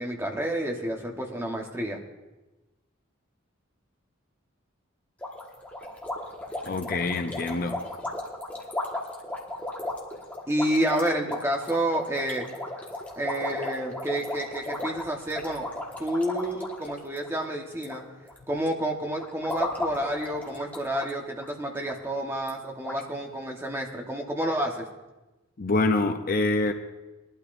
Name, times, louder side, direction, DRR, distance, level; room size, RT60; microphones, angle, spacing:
voice 1, 0.0-2.0 10.5-12.4 13.2-15.7 16.0-18.0 18.5-24.8, right 1 dB, 10° right, 0 dB, 1.2 m, -29 dB
sound 1, 5.2-18.0 18.2-18.7 19.2-21.1 21.4-21.5 21.9-22.0 22.5-22.6 22.8-23.0, left 1 dB, 10° left, 1.5 m, -35 dB
voice 2, 6.6-7.8 25.6-26.7, left 2 dB, 45° left, 7 dB, 0.6 m, -25 dB
20.5 x 12.0 x 2.6 m, 1.1 s
head